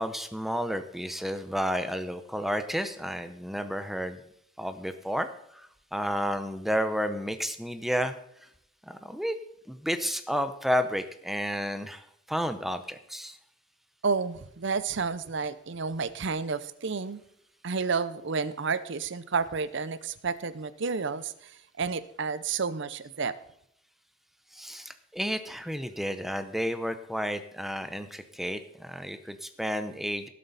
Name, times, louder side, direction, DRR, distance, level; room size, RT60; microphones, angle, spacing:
voice 1, 0.0-4.2 4.6-8.1 8.4-8.5 8.8-9.4 9.7-13.4 24.5-30.3, equal, ahead, 9 dB, 0.7 m, -31 dB
voice 2, 14.0-17.2 17.6-23.4, right 5 dB, 65° right, 15 dB, 0.6 m, -31 dB
18.5 x 7.6 x 4.1 m, 0.75 s
head